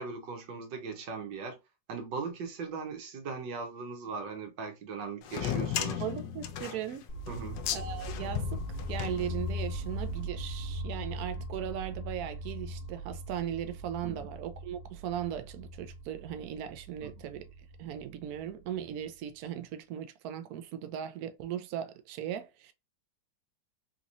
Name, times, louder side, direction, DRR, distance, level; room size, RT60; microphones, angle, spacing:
voice 1, 0.0-1.6 1.9-6.0 7.3-7.6 14.0-14.3 17.0-17.1, right 5 dB, 90° right, 1.7 m, -39 dB
sound 1, 5.2-9.8, left 9 dB, 85° left, 1.2 m, -35 dB
voice 2, 5.8-7.1 7.7-8.6 8.9-17.5 17.8-22.7, right 10 dB, 70° right, 1.0 m, -38 dB
sound 2, 7.1-19.0, equal, 40° left, 0.8 m, -40 dB
3.7 x 3.0 x 2.5 m
omnidirectional pair, 1.9 m